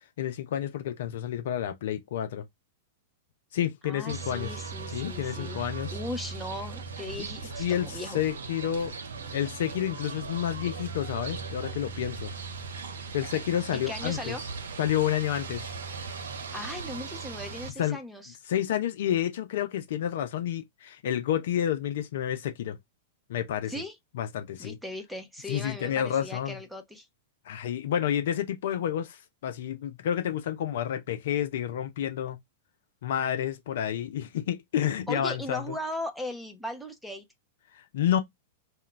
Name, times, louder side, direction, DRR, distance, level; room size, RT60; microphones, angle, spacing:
voice 1, 0.2-2.4 3.5-4.5 4.9-5.9 7.6-8.9 9.3-12.3 13.1-14.4 14.8-15.7 17.8-18.0 18.5-22.8 23.3-23.7 24.1-24.8 25.5-26.6 27.5-32.4 33.0-35.6 37.9-38.2, left 10 dB, 60° left, 0.4 m, -29 dB
voice 2, 3.8-5.6 5.9-8.2 13.7-14.4 16.5-18.4 23.7-24.0 24.6-27.1 35.1-37.2, left 1 dB, ahead, 0.7 m, -38 dB
sound 1, 4.1-17.7, right 4 dB, 70° right, 0.5 m, -38 dB
2.2 x 2.2 x 3.7 m
figure-of-eight pair, 100°, 0 cm